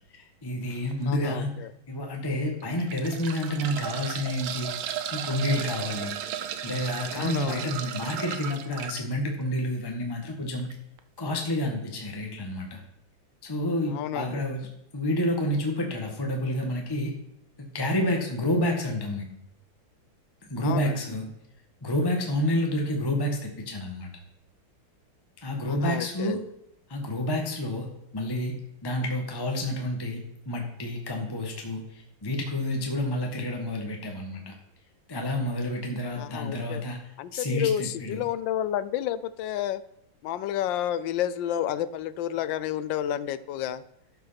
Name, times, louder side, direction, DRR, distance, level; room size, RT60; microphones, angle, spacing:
voice 1, 0.1-1.5 1.9-4.7 5.1-6.2 6.6-10.7 11.2-12.8 13.4-14.7 14.9-17.1 17.6-19.3 20.5-21.3 21.8-24.1 25.4-26.4 26.9-27.9 28.1-28.6 28.8-34.5 35.1-37.0 37.3-38.2, left 1 dB, 15° left, 2 dB, 1.1 m, -29 dB
sound 1, 0.7-0.9 1.6-1.7 2.6-9.0 10.6-10.7 11.0-11.1, right 9 dB, 80° right, 1.6 m, -35 dB
voice 2, 1.1-1.7 7.1-7.7 13.9-14.4 20.6-21.0 25.7-26.4 36.1-36.8 37.2-39.8 40.2-43.8, left 11 dB, 75° left, 16 dB, 1.2 m, -30 dB
12.0 x 5.9 x 5.7 m, 0.77 s
omnidirectional pair, 2.2 m